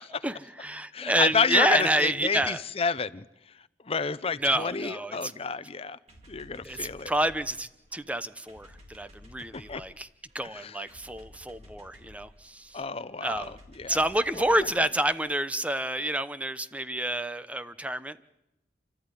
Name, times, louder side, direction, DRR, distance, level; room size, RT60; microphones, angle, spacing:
voice 1, 0.2-2.6 4.4-5.3 6.6-10.1 10.3-12.8 13.2-13.6 13.9-18.3, right 1 dB, 10° right, 0.9 m, -28 dB
voice 2, 0.9-3.3 3.8-6.0 6.3-7.1 9.5-9.8 10.5-10.7 12.7-14.0 14.5-14.6, left 5 dB, 35° left, 0.8 m, -30 dB
sound 1, 6.1-15.6, left 1 dB, 40° right, 3.9 m, -54 dB
29.0 x 13.5 x 9.9 m
head